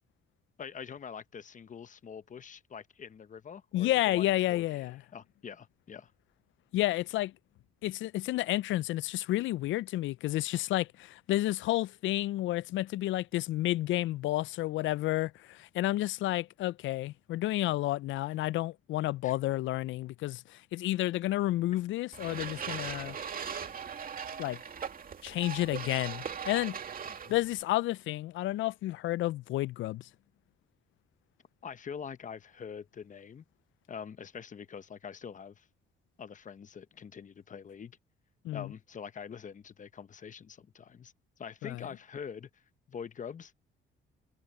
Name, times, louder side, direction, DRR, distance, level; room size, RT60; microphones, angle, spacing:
voice 1, 0.6-6.1 19.2-19.4 27.1-27.3 31.6-33.4 33.9-35.7 36.2-38.0 38.5-41.1 41.4-42.6 42.9-43.5, left 7 dB, 40° left, 0.9 m, -44 dB
voice 2, 3.7-5.0 6.7-7.3 7.8-23.2 24.4-24.6 25.2-26.8 27.3-30.1 38.4-38.7 41.6-41.8, left 16 dB, 75° left, 0.4 m, -31 dB
sound 1, 22.1-27.6, right 7 dB, 45° right, 2.4 m, -39 dB
cardioid pair, 90°, 20 cm